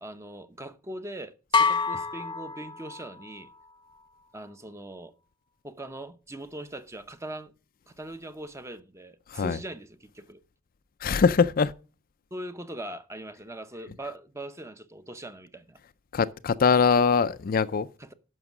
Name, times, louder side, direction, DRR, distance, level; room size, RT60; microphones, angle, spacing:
voice 1, 0.0-3.5 4.3-5.1 5.6-7.5 7.9-10.4 12.3-15.8 18.0-18.1, right 1 dB, 15° right, 0.7 m, -41 dB
sound 1, 1.5-3.3, left 5 dB, 20° left, 0.8 m, -26 dB
voice 2, 11.0-11.7 16.1-17.9, left 5 dB, 45° left, 0.4 m, -22 dB
11.0 x 6.3 x 6.0 m
head